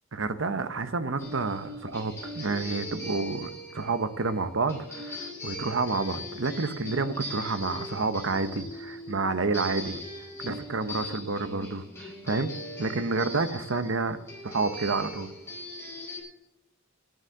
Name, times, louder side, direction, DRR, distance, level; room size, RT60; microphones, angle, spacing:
voice 1, 0.1-10.0 10.4-12.5 12.8-14.2 14.4-15.3, right 3 dB, 80° right, 11 dB, 0.9 m, -29 dB
sound 1, 1.2-16.2, left 1 dB, 15° left, 4.7 m, -40 dB
10.5 x 9.4 x 6.5 m, 0.92 s
head